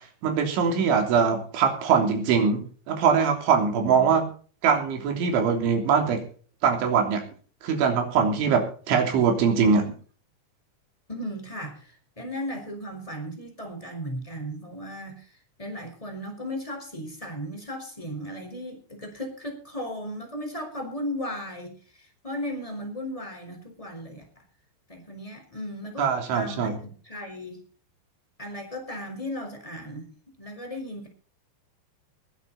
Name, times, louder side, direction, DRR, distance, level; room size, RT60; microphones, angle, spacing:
voice 1, 0.2-4.2 4.6-6.2 6.6-7.2 7.6-9.9 26.0-26.8, right 6 dB, 70° right, 4 dB, 5.6 m, -22 dB
voice 2, 3.8-4.2 11.1-24.4 24.9-27.6 28.4-30.1 30.4-31.1, equal, 5° left, 4 dB, 4.3 m, -36 dB
21.5 x 10.5 x 4.2 m, 0.41 s
omnidirectional pair, 5.8 m